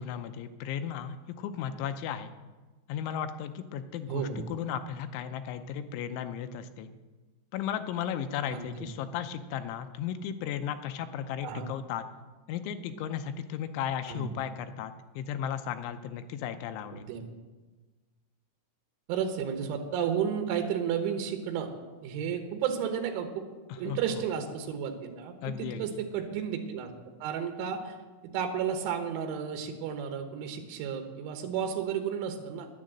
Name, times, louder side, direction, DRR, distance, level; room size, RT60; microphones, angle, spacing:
voice 1, 0.0-2.3 2.9-6.9 7.5-12.0 12.5-17.1 23.7-24.2 25.4-25.9, left 9 dB, 80° left, 8 dB, 3.0 m, -35 dB
voice 2, 4.1-4.4 8.5-8.9 11.4-11.7 14.1-14.3 17.1-17.3 19.1-21.7 22.0-23.5 23.8-26.9 27.2-28.0 28.3-32.8, right 8 dB, 80° right, 4 dB, 3.5 m, -32 dB
10.5 x 10.5 x 7.5 m, 1.2 s
omnidirectional pair, 5.5 m